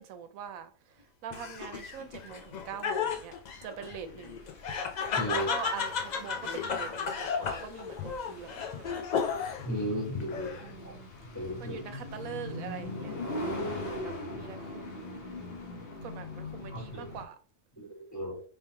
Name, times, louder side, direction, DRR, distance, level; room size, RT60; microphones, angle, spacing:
voice 1, 0.0-3.3 3.6-4.4 5.3-9.0 10.5-15.4 16.0-17.4, right 7 dB, 90° right, 1.0 m, -44 dB
Laughter, 1.3-9.7 10.1-10.8, left 6 dB, 70° left, 0.4 m, -34 dB
sound 1, 1.4-17.2, left 2 dB, 50° left, 1.0 m, -42 dB
voice 2, 5.2-5.5 9.6-10.5 10.8-10.9 11.3-11.8 16.7-17.1 17.8-18.4, right 1 dB, 15° left, 0.9 m, -35 dB
3.5 x 3.3 x 2.8 m
omnidirectional pair, 1.4 m